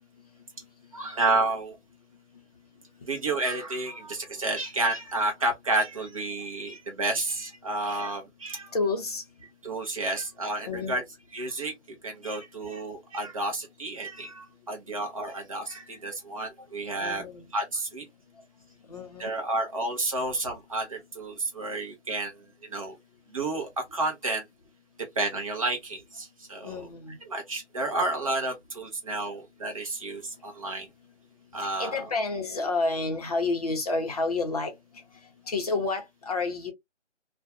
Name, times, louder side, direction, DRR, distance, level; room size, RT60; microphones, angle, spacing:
voice 1, 0.9-1.8 3.0-8.7 9.6-11.0 11.3-11.7 12.0-17.3 17.5-18.0 19.2-22.4 22.6-23.0 23.3-24.5 25.2-26.9 27.3-30.9 31.5-31.9, right 2 dB, 30° right, 0.6 m, -30 dB
voice 2, 8.7-9.2 10.6-11.0 17.0-17.4 18.9-19.3 26.6-27.2 31.6-34.7 35.5-36.7, left 3 dB, 30° left, 0.6 m, -29 dB
2.4 x 2.1 x 2.5 m
figure-of-eight pair, 155°, 37 cm